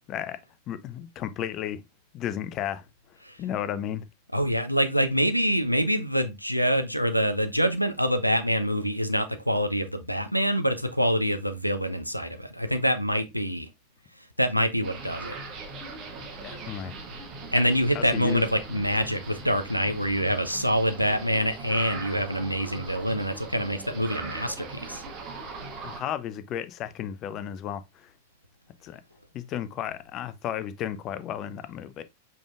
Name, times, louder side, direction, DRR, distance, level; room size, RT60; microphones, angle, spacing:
voice 1, 0.1-0.4 0.7-1.8 2.1-2.8 3.4-4.1 16.4-16.9 17.9-18.4 25.8-28.1 28.8-29.0 29.3-32.0, left 10 dB, 35° left, 0.4 m, -33 dB
voice 2, 4.3-13.7 14.4-15.3 17.5-25.0, equal, 90° right, 0.5 m, -25 dB
sound 1, 14.8-26.0, right 3 dB, 35° right, 1.1 m, -40 dB
5.0 x 3.4 x 2.4 m
figure-of-eight pair, 90°, 0 cm